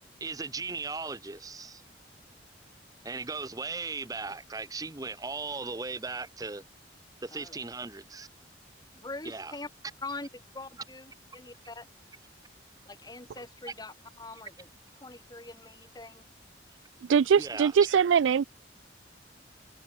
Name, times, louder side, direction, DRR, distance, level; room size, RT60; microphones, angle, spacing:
voice 1, 0.2-1.8 3.0-6.6 7.2-8.3 9.2-9.5 17.4-17.7, right 4 dB, 20° right, 0.8 m, -37 dB
voice 2, 8.9-9.7 10.0-11.9 12.8-14.7 15.0-16.2, left 3 dB, 20° left, 1.7 m, -43 dB
voice 3, 17.1-18.4, right 7 dB, 90° right, 0.4 m, -22 dB
head